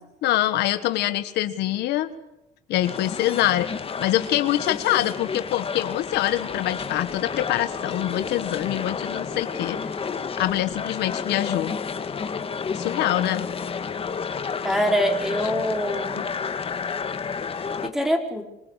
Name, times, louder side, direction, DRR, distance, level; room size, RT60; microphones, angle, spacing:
voice 1, 0.2-2.1 2.7-3.7 4.0-9.8 10.4-11.7 12.7-13.5 15.4-15.5 16.2-16.3, left 14 dB, 80° left, 11 dB, 1.5 m, -24 dB
sound 1, 2.8-17.9, left 6 dB, 35° left, 1.9 m, -31 dB
voice 2, 14.6-16.2 17.8-18.4, equal, ahead, 3 dB, 4.7 m, -24 dB
25.5 x 23.0 x 8.3 m, 0.92 s
cardioid pair, 110°, 17 cm